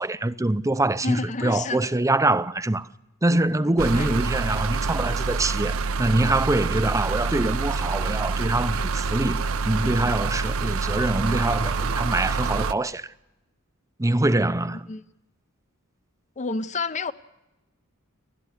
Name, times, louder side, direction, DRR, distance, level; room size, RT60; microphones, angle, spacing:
voice 1, 0.0-2.9 3.2-13.1 14.0-14.9, right 2 dB, 15° right, 0.7 m, -24 dB
voice 2, 1.0-1.9 3.6-4.2 14.6-15.0 16.4-17.1, left 3 dB, 35° left, 0.7 m, -30 dB
sound 1, 3.8-12.7, right 4 dB, 70° right, 0.7 m, -26 dB
29.0 x 12.0 x 8.2 m
head